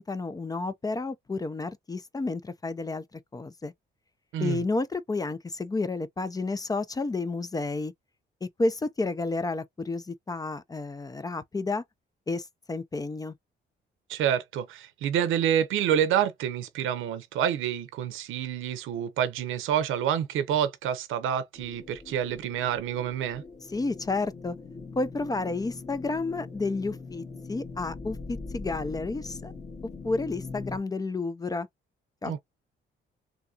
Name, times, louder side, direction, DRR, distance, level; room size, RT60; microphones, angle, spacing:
voice 1, 0.0-3.0 3.3-3.7 4.4-7.9 8.4-11.8 12.3-13.3 23.7-24.6 25.0-27.2 27.5-29.5 30.0-31.7 32.2-32.4, left 3 dB, 20° left, 0.4 m, -31 dB
voice 2, 4.3-4.6 14.1-23.4 32.3-32.4, right 9 dB, 85° right, 0.8 m, -28 dB
sound 1, 21.5-30.8, left 4 dB, 35° left, 1.6 m, -42 dB
3.4 x 2.8 x 2.7 m
cardioid pair, 90°, 20 cm